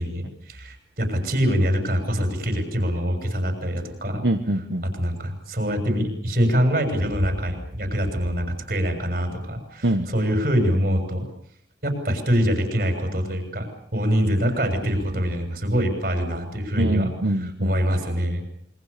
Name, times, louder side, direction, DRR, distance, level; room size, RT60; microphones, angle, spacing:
voice 1, 0.0-4.2 4.8-11.3 11.8-17.1 17.4-18.4, equal, 55° right, 6 dB, 7.1 m, -24 dB
voice 2, 4.2-4.9 9.8-10.1 16.8-17.8, right 1 dB, 80° right, 6 dB, 1.6 m, -24 dB
28.0 x 23.5 x 7.0 m, 0.67 s
head